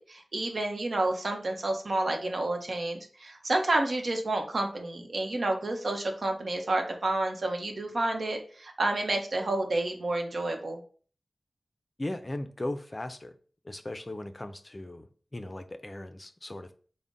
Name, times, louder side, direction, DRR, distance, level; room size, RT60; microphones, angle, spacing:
voice 1, 0.0-10.8, right 2 dB, 70° right, 0.7 m, -30 dB
voice 2, 12.0-13.4 13.6-16.7, left 1 dB, 35° left, 0.4 m, -38 dB
3.9 x 2.1 x 3.6 m
cardioid pair, 45°, 0 cm